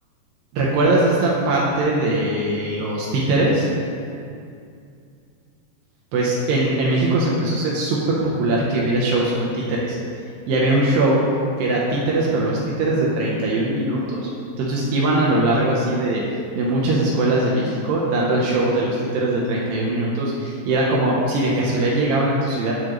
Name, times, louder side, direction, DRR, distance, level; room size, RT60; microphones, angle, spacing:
voice 1, 0.5-3.7 6.1-10.0 10.5-11.2 11.6-14.2 14.6-16.2 16.6-22.7, right 2 dB, 90° right, -4 dB, 2.0 m, -21 dB
8.3 x 3.0 x 6.3 m, 2.4 s
omnidirectional pair, 5.1 m